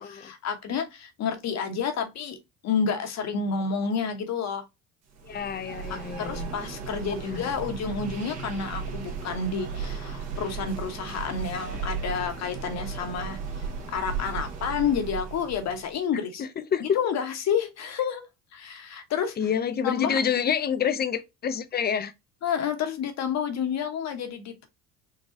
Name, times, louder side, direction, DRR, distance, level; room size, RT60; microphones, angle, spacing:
voice 1, 0.0-2.4 2.6-4.6 5.9-13.4 13.9-16.4 16.8-18.2 18.5-19.3 19.8-20.2 22.4-24.7, left 6 dB, 50° left, 1.1 m, -29 dB
sound 1, 5.1-16.0, right 5 dB, 50° right, 1.5 m, -36 dB
voice 2, 5.2-6.5 7.2-7.5 16.4-16.8 19.4-22.1, left 7 dB, 30° left, 0.6 m, -28 dB
4.0 x 2.3 x 3.7 m
supercardioid pair, 85°, 34 cm